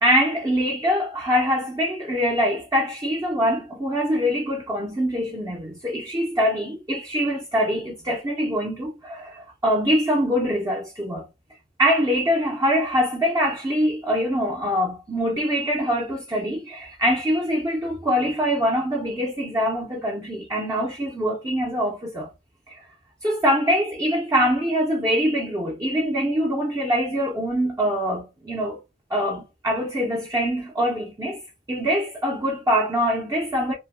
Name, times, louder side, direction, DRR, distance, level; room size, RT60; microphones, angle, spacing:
voice 1, 0.0-11.3 11.8-22.3 22.7-22.8 23.2-28.8 29.1-31.4 31.7-33.7, equal, 20° right, 0.6 m, -24 dB
2.2 x 2.1 x 3.2 m
head